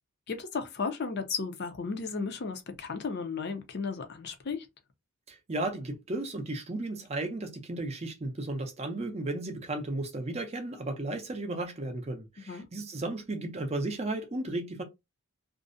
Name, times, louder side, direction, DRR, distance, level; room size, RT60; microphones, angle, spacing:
voice 1, 0.3-4.7 12.5-12.7, left 5 dB, 45° left, 0.5 m, -34 dB
voice 2, 5.3-14.8, right 2 dB, 30° right, 0.5 m, -34 dB
2.5 x 2.0 x 2.5 m
head